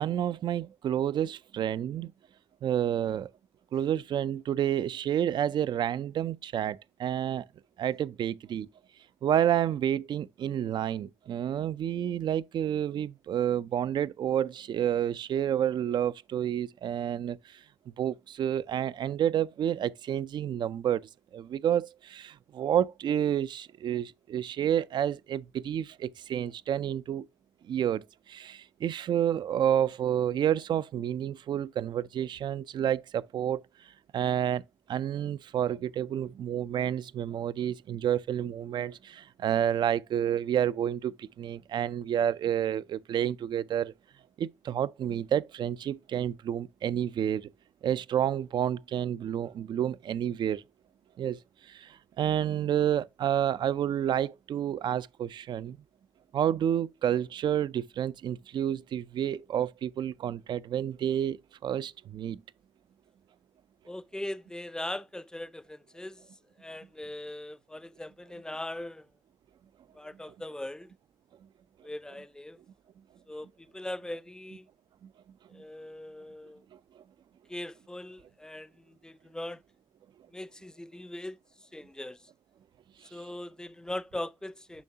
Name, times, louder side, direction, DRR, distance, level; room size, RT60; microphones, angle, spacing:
voice 1, 0.0-2.1 2.6-3.3 3.7-7.5 7.8-8.7 9.2-17.6 18.0-27.3 27.6-33.6 34.1-34.6 34.9-43.9 44.4-47.5 47.8-50.6 51.2-55.8 56.3-62.4, right 10 dB, 70° right, 0.4 m, -29 dB
voice 2, 63.9-66.2 66.6-69.1 69.9-70.9 71.8-72.6 73.3-74.7 75.5-76.6 77.5-79.6 80.3-81.4 81.7-82.2 83.1-84.8, left 1 dB, 10° left, 0.4 m, -40 dB
7.2 x 5.4 x 2.8 m
cardioid pair, 60°, 8 cm